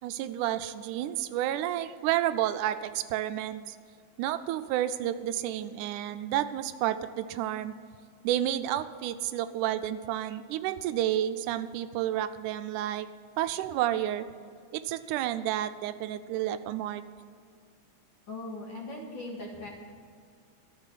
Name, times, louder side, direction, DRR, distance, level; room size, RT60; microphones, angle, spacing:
voice 1, 0.0-3.8 4.2-7.7 8.2-13.1 13.4-14.3 14.7-17.0, right 12 dB, 90° right, 11 dB, 2.1 m, -30 dB
voice 2, 18.3-19.7, left 2 dB, 45° left, -1 dB, 2.2 m, -39 dB
13.5 x 6.3 x 9.9 m, 2.2 s
omnidirectional pair, 3.5 m